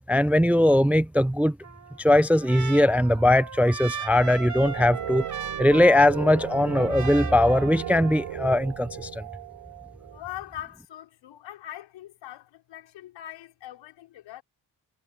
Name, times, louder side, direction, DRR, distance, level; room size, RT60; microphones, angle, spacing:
voice 1, 0.1-1.6 2.0-5.2 5.6-9.2, left 1 dB, 5° right, 0.3 m, -20 dB
Trumpet, 1.6-8.4, right 6 dB, 40° right, 2.3 m, -38 dB
sound 1, 4.6-10.2, right 12 dB, 85° right, 3.5 m, -36 dB
voice 2, 10.1-14.4, left 13 dB, 90° left, 5.1 m, -41 dB
supercardioid pair, 60°, 43 cm